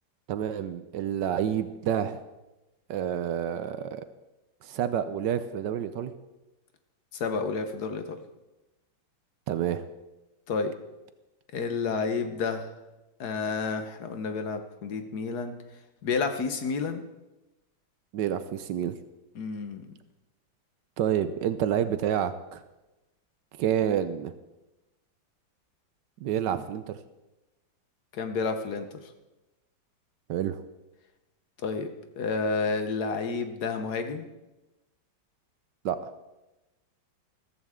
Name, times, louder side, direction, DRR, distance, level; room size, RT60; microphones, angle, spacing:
voice 1, 0.3-2.2 2.9-4.0 4.6-6.1 9.5-9.8 18.1-19.0 21.0-22.6 23.6-24.3 26.2-26.9 30.3-30.6 35.8-36.1, right 9 dB, 70° right, 12 dB, 1.2 m, -28 dB
voice 2, 7.2-8.2 10.5-10.7 11.5-12.7 13.2-15.5 16.0-17.0 19.3-19.9 28.1-28.9 31.6-34.3, left 4 dB, 60° left, 7 dB, 1.5 m, -30 dB
14.5 x 14.0 x 3.7 m, 1.0 s
omnidirectional pair, 2.1 m